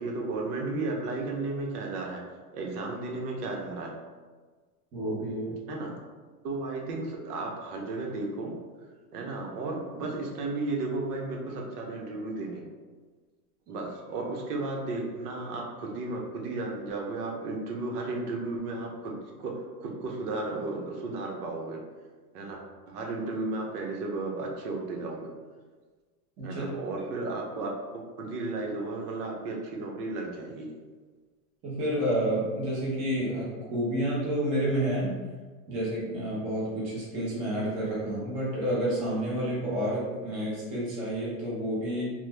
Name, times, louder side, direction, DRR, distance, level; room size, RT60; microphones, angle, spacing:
voice 1, 0.0-2.2 2.5-3.9 5.7-5.9 6.4-8.5 9.1-12.7 13.7-19.1 19.4-19.5 19.8-21.8 22.3-22.6 22.9-25.3 26.4-27.7 28.2-30.7, right 3 dB, 85° right, 0 dB, 0.9 m, -34 dB
voice 2, 4.9-5.6 26.4-26.6 27.0-27.1 31.6-35.1 35.7-42.1, right 1 dB, 15° right, -7 dB, 0.4 m, -29 dB
3.1 x 2.0 x 3.3 m, 1.4 s
supercardioid pair, 165°, 45 cm